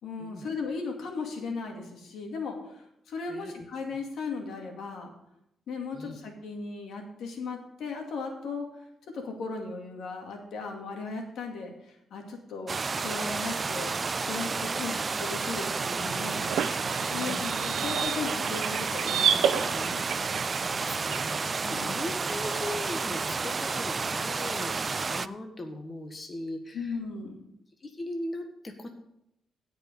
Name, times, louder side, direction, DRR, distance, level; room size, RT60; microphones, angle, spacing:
voice 1, 0.0-5.1 5.7-8.7 9.1-16.5 17.1-20.3 21.6-22.0 26.7-27.5, left 4 dB, 75° left, 2 dB, 2.3 m, -37 dB
sound 1, 12.7-25.3, right 4 dB, 35° right, 0.4 m, -31 dB
sound 2, 15.8-21.3, right 8 dB, 80° right, 0.7 m, -31 dB
voice 2, 17.1-17.5 20.4-27.0 27.8-28.9, left 2 dB, 30° left, 4 dB, 1.5 m, -39 dB
16.0 x 5.4 x 5.4 m, 0.80 s
cardioid pair, 80°, 0 cm